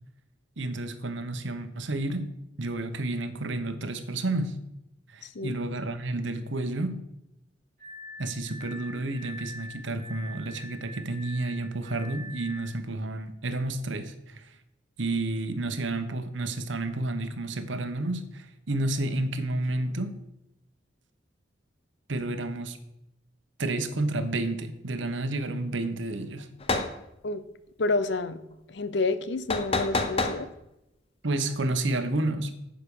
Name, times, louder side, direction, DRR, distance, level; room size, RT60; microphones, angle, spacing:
voice 1, 0.6-2.3 2.6-4.6 5.1-7.0 8.2-14.6 15.0-20.1 22.1-22.8 23.6-26.5 31.2-32.6, right 2 dB, 70° right, 9 dB, 1.0 m, -30 dB
voice 2, 5.2-5.6 27.2-27.4 27.8-28.4 28.7-30.5, left 3 dB, 65° left, 13 dB, 0.7 m, -29 dB
Glass, 7.8-12.8, left 1 dB, 35° right, 1.8 m, -44 dB
sound 1, 26.6-26.9 29.5-30.4, left 3 dB, 30° left, 0.8 m, -27 dB
9.3 x 5.2 x 7.0 m, 0.86 s
head